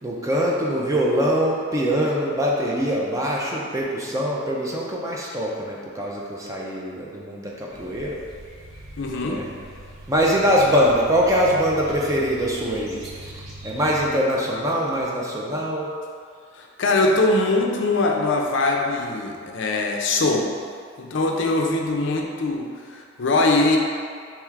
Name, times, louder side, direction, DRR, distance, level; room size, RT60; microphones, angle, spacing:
voice 1, 0.0-8.2 9.2-9.5 10.1-13.3 13.6-15.9, equal, 15° right, -3 dB, 0.4 m, -23 dB
sound 1, 7.7-14.1, right 1 dB, 70° right, 1.0 m, -42 dB
voice 2, 9.0-9.5 16.5-20.5 21.0-23.8, left 2 dB, 60° left, 1 dB, 0.4 m, -22 dB
3.5 x 3.1 x 4.5 m, 2.1 s
head